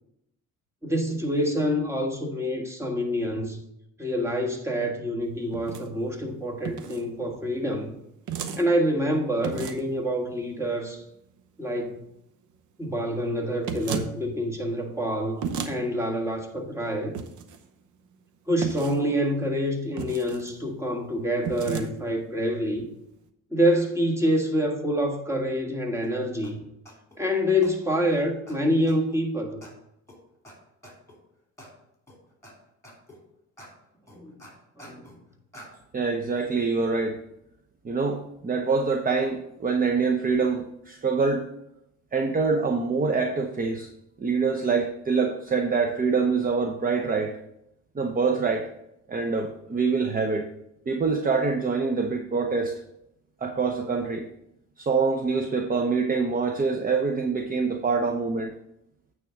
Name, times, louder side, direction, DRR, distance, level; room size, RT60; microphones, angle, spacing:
voice 1, 0.8-3.6 4.0-7.9 8.6-11.0 11.6-12.0 12.8-17.2 18.5-22.9 23.5-26.6 27.2-29.6 34.1-34.3 34.8-35.1, equal, 10° right, 1 dB, 1.6 m, -26 dB
sound 1, 5.5-5.9 6.6-7.0 8.3-8.6 9.4-9.9 13.6-14.1 15.4-15.7 17.1-17.6 18.6-19.0 20.0-20.5 21.4-21.9, right 6 dB, 80° right, 0.9 m, -32 dB
sound 2, 26.0-26.1 26.4-26.5 26.8-27.2 27.6-27.7 28.1-28.2 28.5-28.6 28.9-29.2 29.6-29.7 30.1-30.2 30.4-30.5 30.8-31.2 31.6-31.7 32.1-32.5 32.8-33.2 33.6-33.7 34.1-35.2 35.5-35.7, equal, 10° left, 2.9 m, -47 dB
voice 2, 35.9-37.2 37.8-41.5 42.1-43.9 44.2-47.4 47.9-48.7 49.1-50.5 50.9-52.8 53.4-54.3 54.8-58.5, right 4 dB, 30° right, 5 dB, 0.8 m, -25 dB
8.9 x 3.6 x 6.9 m, 0.81 s
cardioid pair, 90°, 30 cm